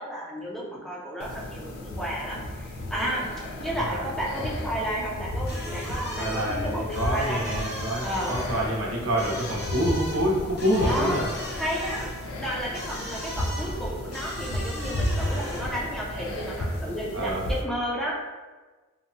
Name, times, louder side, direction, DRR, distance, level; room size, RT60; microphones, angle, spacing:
voice 1, 0.0-3.3 3.6-7.6 8.0-8.4 10.9-11.2 11.6-12.1 12.4-18.1, equal, ahead, -5 dB, 0.5 m, -32 dB
sound 1, 1.2-17.6, left 1 dB, 90° left, 0.4 m, -33 dB
voice 2, 3.7-4.1 6.2-11.3 17.1-17.5, equal, 80° right, -3 dB, 0.7 m, -27 dB
sound 2, 5.4-15.9, left 1 dB, 55° left, 0.7 m, -39 dB
2.8 x 2.1 x 2.6 m, 1.3 s
head